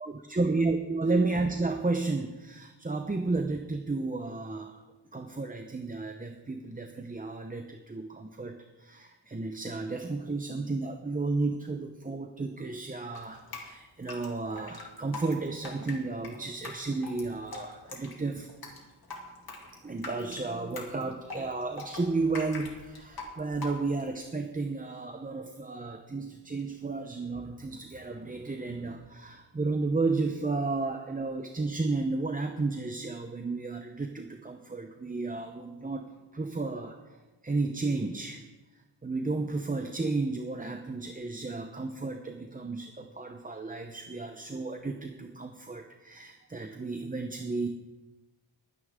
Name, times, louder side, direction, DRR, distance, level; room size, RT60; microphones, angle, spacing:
voice 1, 0.0-4.8 5.1-18.5 19.8-37.2 37.4-38.5 39.0-47.7, right 3 dB, 20° right, 5 dB, 0.8 m, -32 dB
Drip, 13.1-24.1, left 3 dB, 55° left, 2.7 m, -43 dB
21.5 x 9.9 x 3.7 m, 1.2 s
wide cardioid pair, 135°, 43 cm